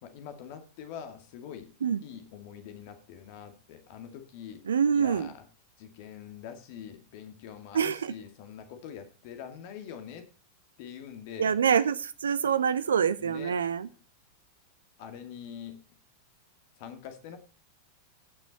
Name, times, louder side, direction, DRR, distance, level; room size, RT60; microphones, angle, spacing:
voice 1, 0.0-1.7 2.0-4.6 4.9-5.5 5.8-10.2 10.8-11.5 12.4-12.5 13.2-13.6 15.0-15.8 16.8-17.4, left 8 dB, 50° left, 7 dB, 2.1 m, -44 dB
voice 2, 4.7-5.3 7.7-8.1 11.4-13.9, right 7 dB, 70° right, 15 dB, 0.7 m, -26 dB
17.0 x 6.2 x 4.1 m, 0.35 s
figure-of-eight pair, 90°, 0 cm